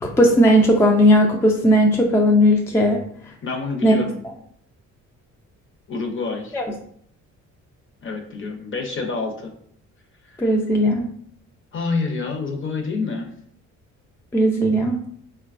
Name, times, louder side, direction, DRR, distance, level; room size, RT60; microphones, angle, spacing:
voice 1, 0.0-3.0 3.8-4.0 6.5-6.6 10.4-11.0 14.3-15.0, equal, 10° left, 2 dB, 0.3 m, -16 dB
voice 2, 3.4-4.2 5.9-6.6 8.0-9.5 10.2-10.4 11.7-13.3, left 4 dB, 40° left, 2 dB, 0.7 m, -27 dB
3.9 x 2.2 x 2.4 m, 0.62 s
cardioid pair, 90°, 30 cm